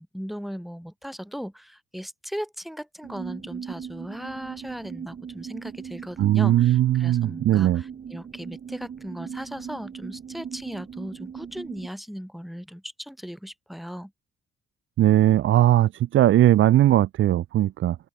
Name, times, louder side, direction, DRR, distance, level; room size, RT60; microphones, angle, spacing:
voice 1, 0.0-14.1, equal, ahead, 5.8 m, -37 dB
sound 1, 3.0-11.9, right 7 dB, 50° right, 8.0 m, -39 dB
voice 2, 6.2-7.8 15.0-18.0, right 13 dB, 75° right, 1.8 m, -19 dB
cardioid pair, 90°, 20 cm